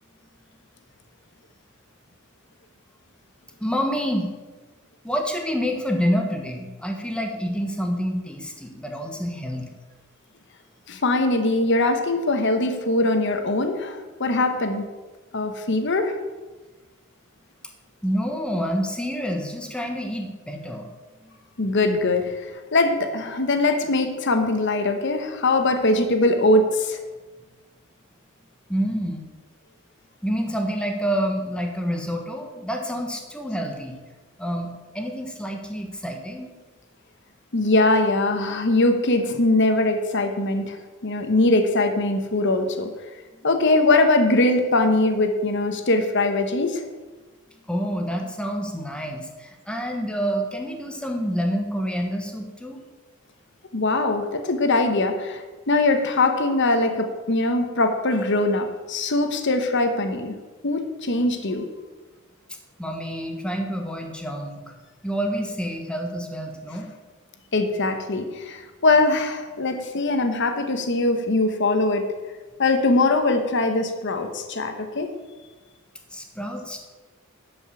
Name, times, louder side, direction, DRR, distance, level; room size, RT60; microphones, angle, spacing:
voice 1, 3.6-4.3 5.0-9.7 18.0-20.9 21.2-21.3 28.7-29.3 30.2-33.9 34.4-36.5 47.7-52.8 62.8-64.7 65.0-66.9 76.1-76.9, equal, 5° left, 3 dB, 1.3 m, -28 dB
voice 2, 10.9-14.9 15.3-16.1 21.6-22.3 22.7-27.0 37.5-40.8 41.0-42.9 43.4-46.8 53.7-60.4 60.6-61.6 67.5-72.1 72.6-75.1, left 2 dB, 60° left, 6 dB, 1.1 m, -21 dB
11.5 x 5.4 x 6.9 m, 1.3 s
head